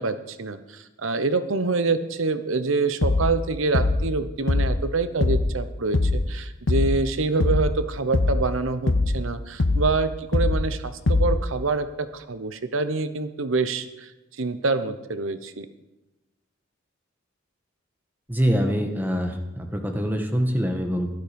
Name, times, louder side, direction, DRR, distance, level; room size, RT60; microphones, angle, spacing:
voice 1, 0.0-14.1 14.4-15.7, right 3 dB, 85° right, 11 dB, 0.9 m, -26 dB
sound 1, 3.0-3.4 3.7-4.1 4.5-4.8 5.2-5.6 5.9-6.3 6.7-7.0 7.4-7.8 8.1-8.5 8.9-9.2 9.6-10.0 10.3-10.7 11.1-11.5, left 2 dB, 70° left, 0.8 m, -22 dB
voice 2, 18.3-21.1, equal, 10° right, 4 dB, 1.5 m, -24 dB
15.5 x 12.0 x 5.2 m, 1.0 s
head